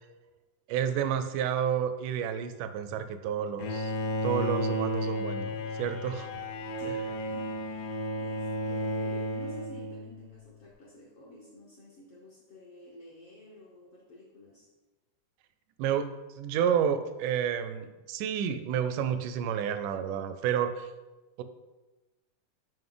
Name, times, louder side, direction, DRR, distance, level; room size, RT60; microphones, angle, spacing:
voice 1, 0.7-3.9 4.2-5.5 5.8-6.3 15.8-16.1 16.4-20.9 21.4-21.5, right 8 dB, 80° right, 10 dB, 1.9 m, -30 dB
Bowed string instrument, 3.6-10.4, left 1 dB, 85° left, 2.3 m, -33 dB
voice 2, 6.8-14.7, left 1 dB, 65° left, -5 dB, 1.4 m, -50 dB
7.8 x 5.3 x 3.8 m, 1.1 s
omnidirectional pair, 3.9 m